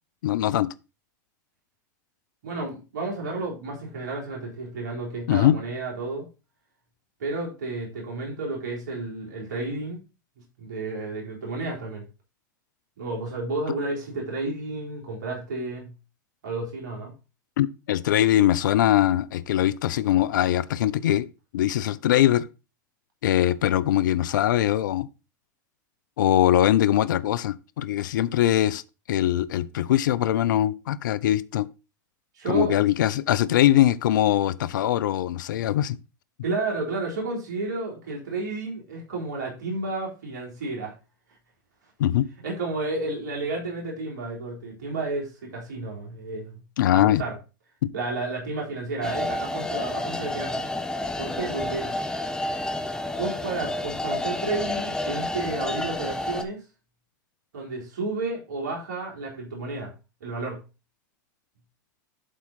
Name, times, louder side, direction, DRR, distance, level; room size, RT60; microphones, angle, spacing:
voice 1, 0.2-0.7 5.3-5.6 17.6-21.3 21.5-22.5 23.2-25.1 26.2-28.8 29.1-31.7 32.5-36.0 42.0-42.3 46.8-47.2 47.8-47.9, left 12 dB, 75° left, 0.5 m, -22 dB
voice 2, 2.4-6.3 7.2-10.0 10.6-12.0 13.0-15.9 16.4-17.1 32.3-32.7 36.4-40.9 42.4-46.6 46.9-47.4 47.9-50.6 51.2-51.9 53.2-56.6 57.5-59.9 60.2-60.6, right 3 dB, 75° right, 3.7 m, -31 dB
sound 1, 49.0-56.4, left 1 dB, 5° left, 1.1 m, -30 dB
11.0 x 4.4 x 4.1 m
hypercardioid pair, 100°, 10 cm